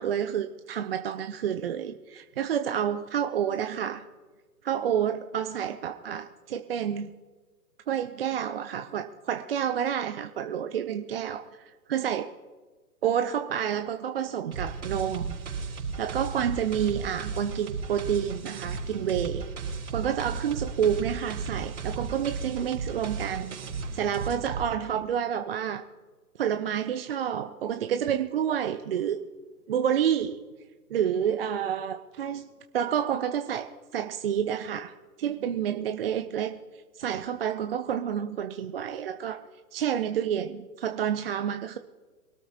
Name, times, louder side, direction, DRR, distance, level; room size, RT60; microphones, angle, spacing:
voice 1, 0.0-4.0 4.6-7.1 7.9-12.3 13.0-15.3 16.0-19.5 19.9-23.6 23.9-25.8 26.4-29.3 29.7-30.4 30.9-32.5 32.7-36.6 36.9-39.4 39.7-41.8, right 9 dB, 40° right, 8 dB, 0.6 m, -29 dB
sound 1, 14.5-24.6, right 5 dB, 60° right, 5.0 m, -35 dB
24.0 x 13.0 x 2.9 m, 1.4 s
figure-of-eight pair, 125°, 47 cm